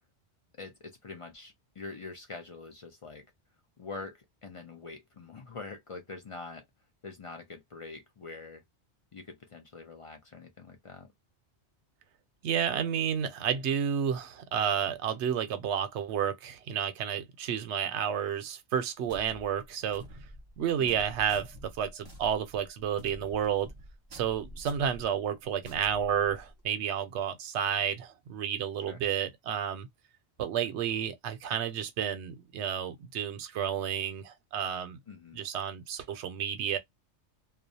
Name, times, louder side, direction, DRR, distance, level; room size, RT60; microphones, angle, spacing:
voice 1, 0.6-3.3 3.8-6.6 7.0-8.6 9.1-11.1 20.8-21.0 28.9-29.0 35.1-35.4, left 3 dB, 50° left, 0.4 m, -44 dB
voice 2, 12.4-20.0 20.6-23.7 24.1-29.9 30.4-35.0 35.3-36.8, right 8 dB, 80° right, 0.9 m, -31 dB
sound 1, 19.1-26.7, equal, 25° right, 0.7 m, -49 dB
2.4 x 2.0 x 2.6 m
omnidirectional pair, 1.2 m